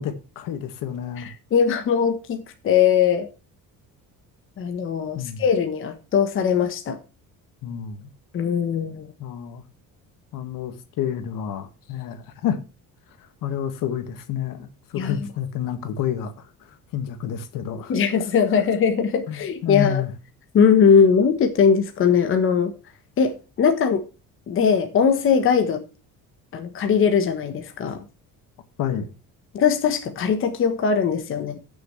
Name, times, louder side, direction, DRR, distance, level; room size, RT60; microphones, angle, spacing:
voice 1, 0.0-1.3 5.2-5.4 7.6-8.1 9.2-9.6 10.3-12.6 13.2-17.9 19.3-20.1 28.8-29.1, left 9 dB, 70° left, 1.9 m, -29 dB
voice 2, 1.2-3.3 4.6-7.0 8.3-9.1 15.0-15.2 17.9-20.0 20.5-22.7 23.2-24.0 24.5-25.9 26.5-28.0 29.5-31.6, left 6 dB, 40° left, 1.2 m, -20 dB
15.5 x 6.5 x 3.3 m
cardioid pair, 165°, 33 cm